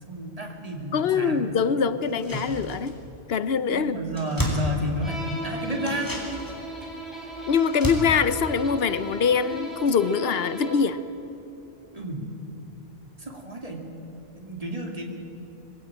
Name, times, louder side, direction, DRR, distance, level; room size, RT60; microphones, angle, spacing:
voice 1, 0.1-1.5 3.7-6.1 11.9-12.3 13.2-13.9 14.4-15.0, equal, 35° right, 1 dB, 2.6 m, -31 dB
voice 2, 0.9-2.9 3.3-3.9 7.5-11.0, left 6 dB, 75° left, 14 dB, 1.0 m, -23 dB
sound 1, 2.0-3.2 3.5-3.6 3.8-5.4 5.8-9.5 9.8-9.9, equal, 20° left, 3.6 m, -33 dB
Bowed string instrument, 5.0-11.0, equal, ahead, 4.0 m, -37 dB
22.0 x 16.0 x 8.7 m, 3.0 s
omnidirectional pair, 1.0 m